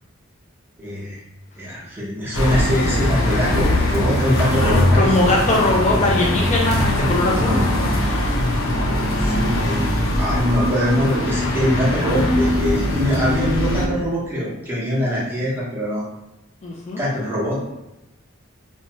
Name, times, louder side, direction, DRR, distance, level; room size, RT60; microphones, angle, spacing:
voice 1, 0.8-1.2 1.6-5.1 7.4-7.7 9.2-9.9 10.2-16.1 17.0-17.6, equal, 10° right, -8 dB, 0.8 m, -23 dB
sound 1, 2.3-13.9, left 1 dB, 90° left, 0.5 m, -21 dB
voice 2, 4.6-7.6 8.0-8.6 16.6-17.0, left 2 dB, 35° left, -2 dB, 0.3 m, -21 dB
2.8 x 2.1 x 2.8 m, 0.94 s
head